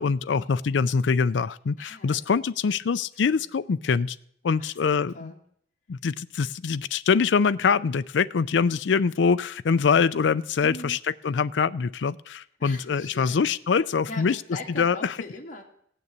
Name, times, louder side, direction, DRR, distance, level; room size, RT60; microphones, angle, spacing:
voice 1, 0.0-4.2 4.4-5.3 5.9-11.0 11.2-14.4 14.8-15.1, left 5 dB, 90° left, 15 dB, 0.4 m, -24 dB
voice 2, 1.8-2.2 2.8-2.9 3.2-3.4 4.6-5.4 10.6-11.0 12.6-13.5 14.1-15.6, left 2 dB, 45° left, 0 dB, 2.3 m, -41 dB
16.5 x 6.8 x 8.7 m, 0.66 s
head